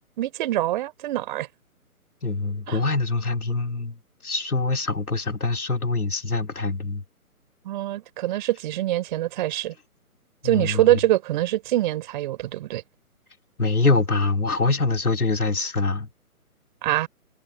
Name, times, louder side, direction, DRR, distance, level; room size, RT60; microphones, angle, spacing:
voice 1, 0.2-1.5 2.7-2.8 7.6-9.7 10.4-12.8 16.8-17.1, right 15 dB, 30° right, 3.5 m, -24 dB
voice 2, 2.2-7.0 10.4-11.0 13.6-16.1, left 3 dB, 80° left, 3.8 m, -24 dB
figure-of-eight pair, 140°, 44 cm